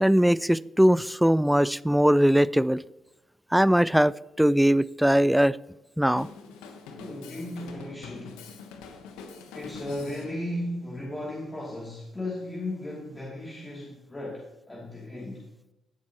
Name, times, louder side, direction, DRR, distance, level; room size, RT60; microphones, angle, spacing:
voice 1, 0.0-2.8 3.5-4.1 4.4-5.6 6.0-6.3, equal, 5° right, 0.3 m, -20 dB
Drum kit, 6.2-10.3, left 5 dB, 90° left, 1.1 m, -44 dB
voice 2, 6.9-8.6 9.5-15.5, left 1 dB, 25° left, 2.8 m, -36 dB
16.0 x 7.4 x 3.0 m
supercardioid pair, 55°, 0 cm